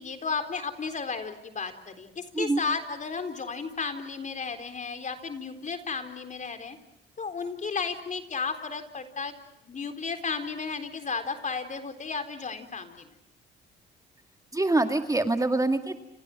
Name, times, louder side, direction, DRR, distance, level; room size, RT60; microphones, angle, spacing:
voice 1, 0.0-6.8 7.2-9.3 9.6-13.1, left 5 dB, 40° left, 8 dB, 4.1 m, -33 dB
voice 2, 14.5-16.0, right 2 dB, 15° right, 6 dB, 2.1 m, -25 dB
29.5 x 28.5 x 6.2 m, 0.81 s
cardioid pair, 90°, 20 cm